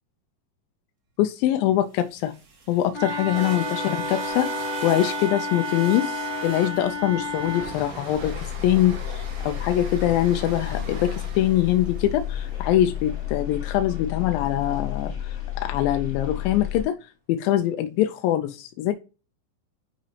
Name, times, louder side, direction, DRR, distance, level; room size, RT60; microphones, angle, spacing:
voice 1, 1.2-2.3 2.7-18.9, left 12 dB, 85° left, 2.4 m, -24 dB
sound 1, 2.0-14.2, right 4 dB, 85° right, 0.7 m, -39 dB
Wind instrument woodwind instrument, 2.9-7.8, left 1 dB, 45° right, 2.3 m, -31 dB
sound 2, 8.1-16.8, left 11 dB, 30° left, 2.1 m, -32 dB
10.5 x 5.2 x 2.8 m
omnidirectional pair, 4.1 m